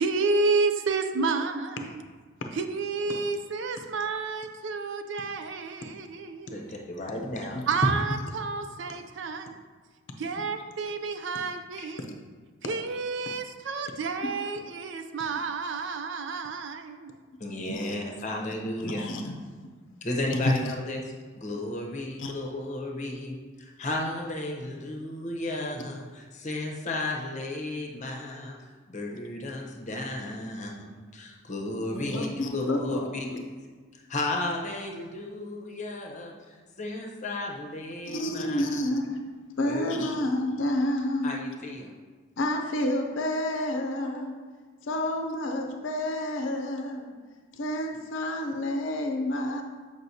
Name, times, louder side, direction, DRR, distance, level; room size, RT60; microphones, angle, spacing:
voice 1, 0.0-2.0 2.5-6.6 7.7-9.5 10.2-12.1 12.7-17.1, right 4 dB, 65° right, 7 dB, 0.4 m, -30 dB
voice 2, 6.5-7.9 10.2-10.3 17.4-19.1 20.0-21.1 21.4-28.6 28.9-33.3 33.9-38.7 39.7-39.9 41.2-41.9, left 2 dB, 35° left, 0 dB, 0.8 m, -33 dB
voice 3, 18.8-19.4 20.3-20.6 22.2-22.3 31.9-33.0 33.3-33.4 38.1-39.2 39.6-41.4 42.4-44.4 44.8-47.1 47.5-49.6, left 1 dB, 70° left, 3 dB, 0.6 m, -30 dB
7.8 x 5.2 x 2.7 m, 1.5 s
head